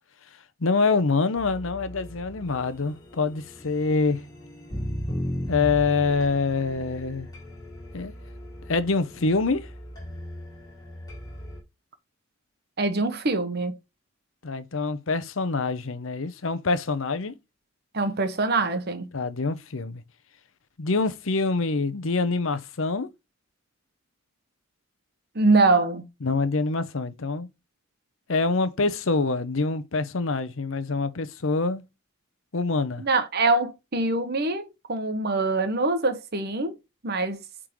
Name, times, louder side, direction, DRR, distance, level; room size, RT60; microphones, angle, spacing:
voice 1, 0.6-4.2 5.5-7.3 7.9-8.1 8.7-9.7 14.4-17.3 19.1-20.0 20.8-23.1 26.2-27.5 28.3-31.8 32.5-33.0, left 3 dB, 65° left, 0.8 m, -25 dB
sound 1, 1.4-11.6, equal, 20° left, 2.8 m, -37 dB
voice 2, 12.8-13.8 17.9-19.1 25.3-26.0 33.0-36.7 37.0-37.4, right 3 dB, 50° right, 1.0 m, -24 dB
8.6 x 3.7 x 3.1 m
head